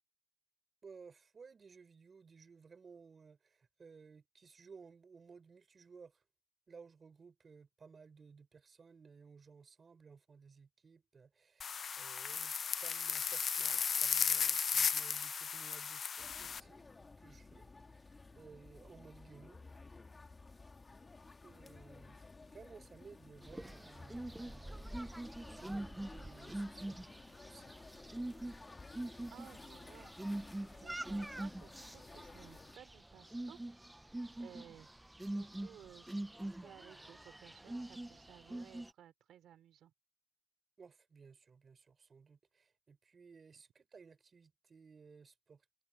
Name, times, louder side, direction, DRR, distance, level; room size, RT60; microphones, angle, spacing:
voice 1, 0.8-6.2 6.7-12.5 12.8-16.9 17.2-19.7 21.4-22.2 22.5-27.0 27.4-27.7 40.8-45.8, right 5 dB, 35° right, 6.2 m, -58 dB
sound 1, 11.6-16.6, left 6 dB, 40° left, 0.4 m, -35 dB
sound 2, 16.2-32.8, left 3 dB, 20° left, 2.2 m, -55 dB
sound 3, 23.4-38.9, right 1 dB, 10° right, 0.6 m, -44 dB
voice 2, 29.3-30.2 30.7-33.6 34.4-34.9 35.2-39.9, right 10 dB, 70° right, 3.1 m, -58 dB
cardioid pair, 130°, 0 cm